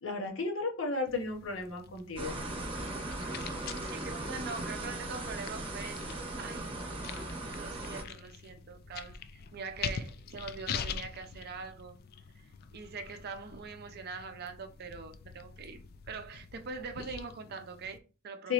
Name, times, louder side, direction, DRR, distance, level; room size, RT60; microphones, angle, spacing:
voice 1, 0.0-2.4 18.4-18.5, left 4 dB, 70° left, 0.8 m, -33 dB
sound 1, 1.1-18.0, left 6 dB, 50° left, 0.3 m, -45 dB
sound 2, 2.2-8.0, right 2 dB, 30° right, 0.9 m, -38 dB
voice 2, 3.8-6.0 6.4-6.7 7.6-12.0 12.7-15.8 16.1-18.5, right 4 dB, 55° right, 0.5 m, -43 dB
3.5 x 2.9 x 2.8 m
head